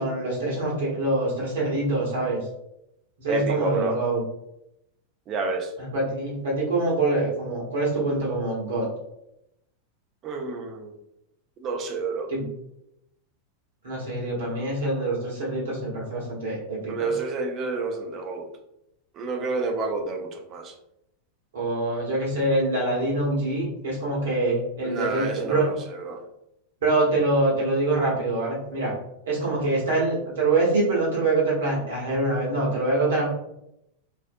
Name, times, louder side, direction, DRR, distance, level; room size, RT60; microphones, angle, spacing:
voice 1, 0.0-2.4 3.2-4.2 5.8-8.9 12.3-12.4 13.8-17.1 21.5-25.8 26.8-28.9 29.3-33.3, right 2 dB, 60° right, -5 dB, 1.0 m, -25 dB
voice 2, 3.3-4.0 5.3-5.7 10.2-10.9 11.6-12.3 16.9-18.5 19.2-20.7 24.8-26.2, right 3 dB, 30° right, 3 dB, 0.4 m, -29 dB
2.5 x 2.0 x 2.6 m, 0.84 s
figure-of-eight pair, 90°, 0 cm